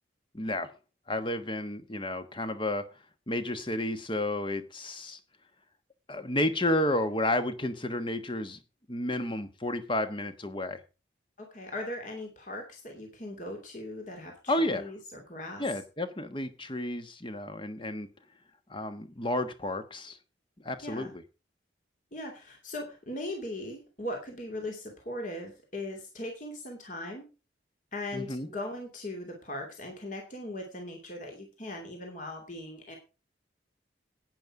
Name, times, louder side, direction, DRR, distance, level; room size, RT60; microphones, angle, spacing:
voice 1, 0.3-0.7 1.1-2.8 3.3-5.2 6.1-8.6 8.9-10.8 14.5-14.9 15.6-18.1 18.7-20.2 20.6-21.2 28.1-28.5, left 1 dB, 25° left, 10 dB, 1.3 m, -31 dB
voice 2, 11.4-15.6 20.8-21.1 22.1-27.2 27.9-33.0, left 1 dB, 45° left, 2 dB, 2.9 m, -39 dB
11.0 x 9.5 x 4.9 m, 0.31 s
head